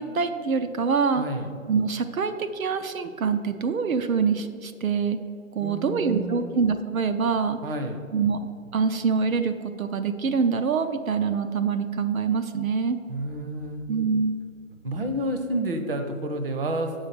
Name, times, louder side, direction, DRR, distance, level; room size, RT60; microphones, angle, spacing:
voice 1, 0.0-1.2 1.7-5.2 5.5-7.6 8.1-8.4 8.7-13.0 13.9-14.3, right 5 dB, 80° right, 8 dB, 0.8 m, -25 dB
voice 2, 1.1-1.5 5.6-6.6 7.6-8.0 13.1-13.8 14.8-16.9, right 1 dB, 45° right, 6 dB, 0.8 m, -30 dB
7.0 x 5.7 x 6.8 m, 2.4 s
hypercardioid pair, 170°, 41 cm